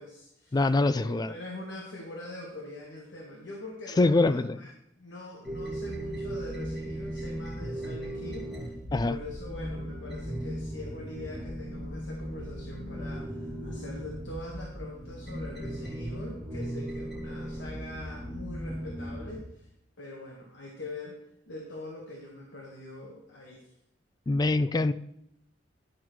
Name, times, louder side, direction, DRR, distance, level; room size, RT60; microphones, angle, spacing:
voice 1, 0.0-4.7 5.0-8.5 8.9-19.7 20.0-21.2 21.5-23.7, left 2 dB, 85° left, -1 dB, 1.6 m, -43 dB
voice 2, 0.5-1.3 4.0-4.6 8.9-9.1 24.3-24.9, left 2 dB, 20° left, 15 dB, 0.3 m, -24 dB
sound 1, 5.4-19.4, equal, ahead, 2.1 m, -37 dB
11.0 x 4.7 x 6.2 m, 0.77 s
head